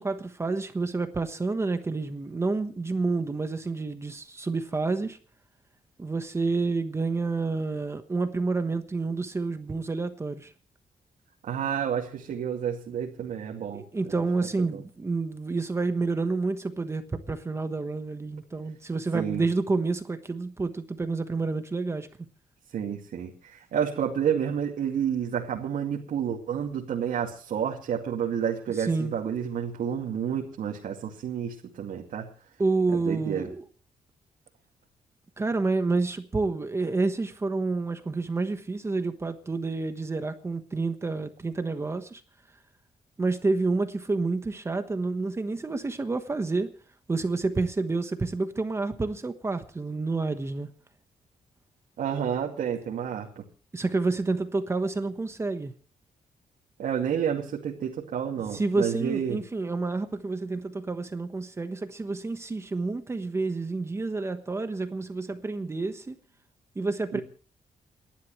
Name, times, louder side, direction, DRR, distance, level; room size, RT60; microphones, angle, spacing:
voice 1, 0.0-5.2 6.0-10.5 13.7-22.1 28.8-29.1 32.6-33.6 35.4-42.2 43.2-46.7 47.1-50.7 53.7-55.7 58.5-66.2 66.7-67.2, right 3 dB, 20° right, 1.2 m, -29 dB
voice 2, 11.4-13.8 14.7-14.8 19.1-19.4 22.7-32.3 33.1-33.5 52.0-53.4 56.8-59.4 67.1-67.2, right 8 dB, 75° right, 2.3 m, -30 dB
29.0 x 11.5 x 3.2 m
wide cardioid pair, 170°, 14 cm